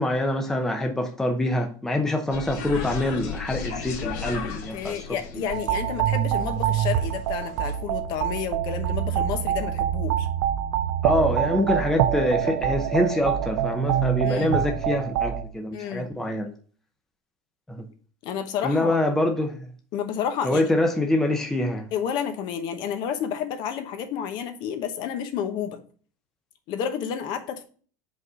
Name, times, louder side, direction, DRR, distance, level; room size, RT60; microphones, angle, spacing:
voice 1, 0.0-5.0 5.4-5.5 11.0-16.5 17.7-17.8 18.6-19.7 20.4-21.9, left 1 dB, 5° left, 0.7 m, -25 dB
sound 1, 2.3-7.8, left 6 dB, 70° left, 1.6 m, -36 dB
voice 2, 4.7-10.3 14.2-14.6 15.7-16.1 18.2-19.1 19.9-20.7 21.9-25.8 26.7-27.6, left 8 dB, 50° left, 1.0 m, -30 dB
sound 2, 5.5-15.4, right 10 dB, 75° right, 0.7 m, -25 dB
5.3 x 4.1 x 6.0 m
supercardioid pair, 150°, 10 cm